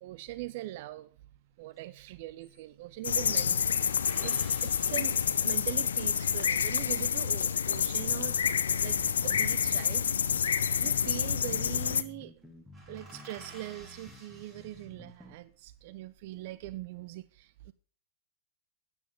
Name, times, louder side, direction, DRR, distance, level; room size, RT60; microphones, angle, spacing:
voice 1, 0.0-1.1 1.6-8.4 8.8-10.0 10.8-17.7, right 16 dB, 50° right, 0.6 m, -42 dB
portress octava, 1.8-1.9 2.1-3.1 3.9-6.4 9.1-10.1 11.2-11.6 11.9-12.0 12.4-12.5 12.7-15.3 15.9-16.5, right 1 dB, 25° right, 6.4 m, -54 dB
sound 1, 3.0-12.0, left 7 dB, 70° left, 0.7 m, -28 dB
sound 2, 9.0-15.4, equal, ahead, 2.2 m, -52 dB
13.5 x 9.8 x 3.8 m
figure-of-eight pair, 90°, 0 cm